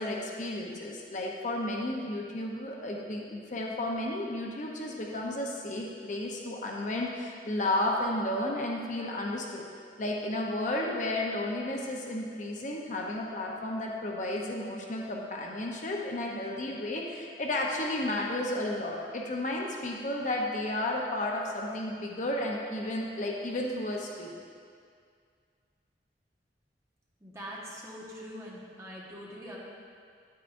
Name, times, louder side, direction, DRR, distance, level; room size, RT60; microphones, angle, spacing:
voice 1, 0.0-9.6 10.0-24.4, left 1 dB, 45° left, -1 dB, 0.7 m, -33 dB
voice 2, 27.2-29.6, equal, 15° right, -5 dB, 1.3 m, -43 dB
9.2 x 9.1 x 2.6 m, 2.2 s
head